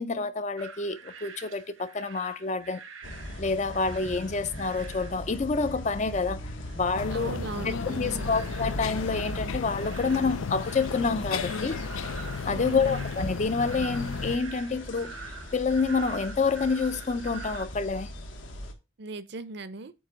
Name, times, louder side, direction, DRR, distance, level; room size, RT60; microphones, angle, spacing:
voice 1, 0.0-2.8 3.4-6.4 6.7-7.3 7.9-11.8 12.5-15.1 15.5-18.1, left 4 dB, 35° left, 0.5 m, -28 dB
sound 1, 0.6-17.7, right 6 dB, 80° right, 1.0 m, -46 dB
sound 2, 3.0-18.7, equal, 70° left, 1.4 m, -39 dB
sound 3, 6.9-14.4, left 5 dB, 90° left, 0.5 m, -34 dB
voice 2, 7.1-8.3 12.5-13.0 19.0-19.9, right 3 dB, 55° right, 0.6 m, -38 dB
8.6 x 2.9 x 6.2 m
head